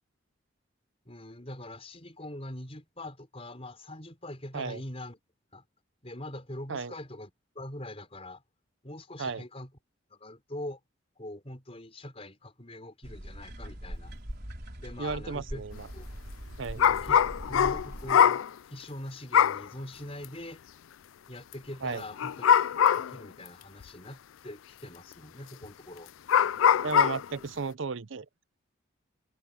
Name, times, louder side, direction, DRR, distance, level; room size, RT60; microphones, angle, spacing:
voice 1, 1.0-5.2 5.5-5.6 6.0-7.3 7.5-8.4 8.8-9.7 10.1-10.8 11.2-14.1 14.8-15.6 15.9-16.1 16.7-17.2 17.5-18.4 18.7-20.6 21.3-22.5 22.8-26.1, left 1 dB, 30° left, 4.9 m, -43 dB
sound 1, 13.0-18.1, equal, 50° right, 4.3 m, -42 dB
voice 2, 15.0-15.9 16.6-16.8 21.8-22.0 26.8-28.3, right 4 dB, 70° right, 0.7 m, -34 dB
sound 2, 16.8-18.5 19.3-19.6 20.2-20.3 22.2-23.2 23.8-23.9 25.6-25.7 26.3-27.2, left 8 dB, 85° left, 0.4 m, -22 dB
head